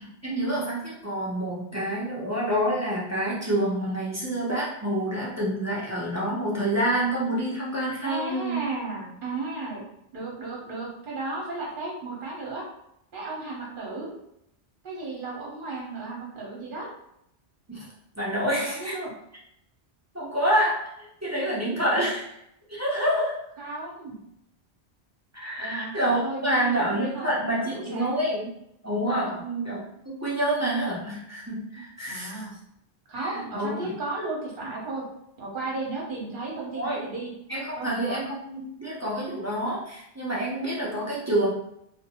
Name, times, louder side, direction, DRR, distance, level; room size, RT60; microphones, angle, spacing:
voice 1, 0.0-8.6 17.7-17.9 18.2-18.9 20.1-20.9 21.2-22.3 22.7-23.4 25.3-28.5 28.8-29.8 30.1-32.4 33.2-33.9 36.7-37.0 37.5-41.5, right 1 dB, 20° right, -7 dB, 0.5 m, -27 dB
voice 2, 8.0-9.9 10.1-12.7 13.1-14.1 14.8-16.9 18.6-19.1 21.7-22.1 23.6-24.2 25.6-27.3 27.6-28.1 29.2-29.4 32.1-32.5 33.1-35.0 35.4-37.3 37.8-38.2, right 3 dB, 55° right, -3 dB, 1.0 m, -34 dB
2.5 x 2.1 x 2.8 m, 0.78 s
omnidirectional pair, 1.1 m